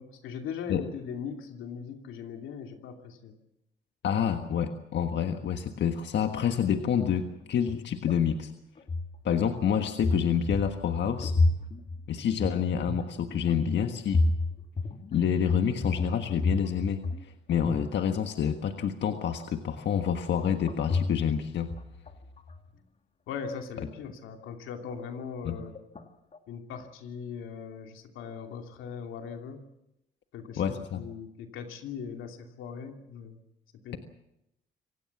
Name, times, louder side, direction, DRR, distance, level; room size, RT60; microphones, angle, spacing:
voice 1, 0.0-3.3 23.3-25.7 26.5-29.6 30.3-33.4 33.8-34.0, left 6 dB, 85° left, 4 dB, 2.8 m, -40 dB
voice 2, 4.0-8.5 9.2-11.3 12.1-14.2 15.1-21.7 25.4-25.6 30.6-31.0, left 8 dB, 65° left, 6 dB, 1.5 m, -28 dB
sound 1, 7.4-8.4 8.8-9.6 10.0-17.2 17.5-18.0 20.7-21.4 21.7-22.7 25.7-26.0 26.3-26.4, left 2 dB, 35° left, 2.2 m, -31 dB
26.0 x 17.5 x 7.2 m, 0.86 s
cardioid pair, 90°, 20 cm